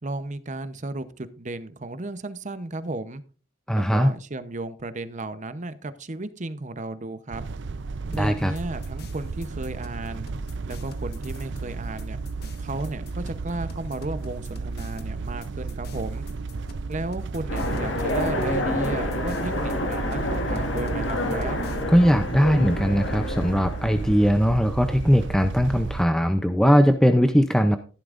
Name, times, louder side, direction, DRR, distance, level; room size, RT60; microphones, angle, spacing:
voice 1, 0.0-3.2 3.7-7.5 8.1-10.3 10.6-12.2 12.6-16.3 16.9-21.6, right 2 dB, 40° right, 12 dB, 0.8 m, -34 dB
voice 2, 3.7-4.1 8.1-8.5 21.9-27.8, equal, 5° left, 7 dB, 0.5 m, -20 dB
sound 1, 7.3-26.0, right 4 dB, 60° right, 0.5 m, -33 dB
sound 2, 8.1-21.8, left 2 dB, 55° left, 1.3 m, -46 dB
Train, 17.5-24.4, left 1 dB, 70° left, 1.9 m, -29 dB
14.5 x 11.5 x 2.5 m, 0.37 s
head